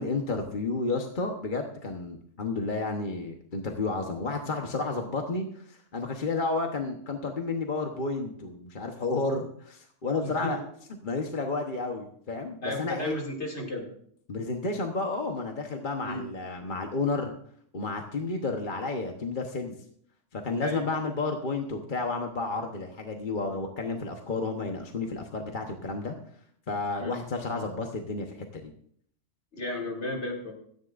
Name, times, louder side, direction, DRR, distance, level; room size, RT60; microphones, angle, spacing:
voice 1, 0.0-10.6 11.0-13.1 14.3-17.3 17.7-19.8 20.3-26.1 26.7-28.6, left 3 dB, 45° left, 3 dB, 1.2 m, -31 dB
voice 2, 10.2-10.6 12.6-13.9 16.0-16.2 20.6-20.8 27.0-27.2 29.5-30.5, left 1 dB, 65° left, 0 dB, 2.9 m, -33 dB
16.5 x 13.5 x 2.5 m, 0.63 s
omnidirectional pair, 1.3 m